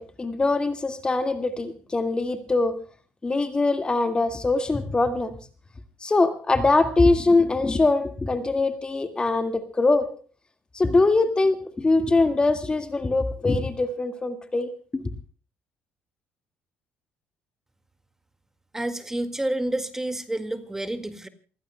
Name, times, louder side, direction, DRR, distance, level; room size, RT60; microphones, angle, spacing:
voice 1, 0.0-2.8 3.2-5.4 6.0-10.1 10.7-15.1, left 3 dB, 20° left, 8 dB, 1.9 m, -23 dB
voice 2, 18.7-21.3, right 1 dB, 10° right, 8 dB, 1.9 m, -29 dB
29.0 x 16.0 x 2.2 m, 0.40 s
cardioid pair, 100°, 4 cm